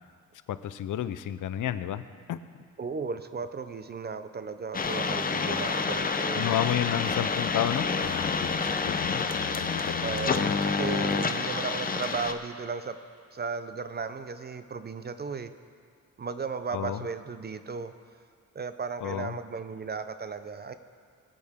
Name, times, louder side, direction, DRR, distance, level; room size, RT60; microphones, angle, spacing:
voice 1, 0.5-2.0 2.3-2.4 6.4-10.5 16.7-17.0 19.0-19.4, left 11 dB, 65° left, 13 dB, 0.6 m, -31 dB
voice 2, 2.8-6.5 10.0-13.0 13.3-15.5 16.2-17.9 18.5-20.7, right 5 dB, 30° right, 10 dB, 0.5 m, -35 dB
sound 1, 4.7-12.3, left 4 dB, 25° left, 0.6 m, -28 dB
22.0 x 8.6 x 3.6 m, 2.1 s
cardioid pair, 130°, 34 cm